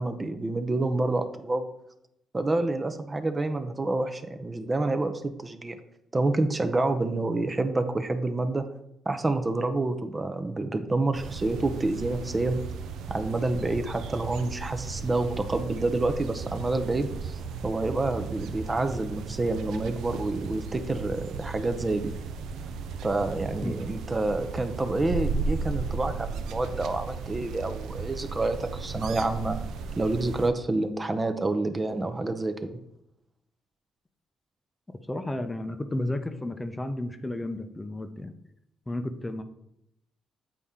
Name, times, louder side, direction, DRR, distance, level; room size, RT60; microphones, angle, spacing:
voice 1, 0.0-1.7 2.3-5.8 6.1-8.7 9.1-12.6 13.1-22.1 23.0-29.6 30.0-32.8, right 2 dB, 25° right, 8 dB, 0.6 m, -28 dB
sound 1, 11.1-30.5, right 4 dB, 85° right, 0.5 m, -35 dB
voice 2, 35.1-38.3 38.9-39.4, left 1 dB, 15° left, 8 dB, 0.6 m, -32 dB
8.4 x 4.1 x 3.7 m, 0.81 s
cardioid pair, 90°, 0 cm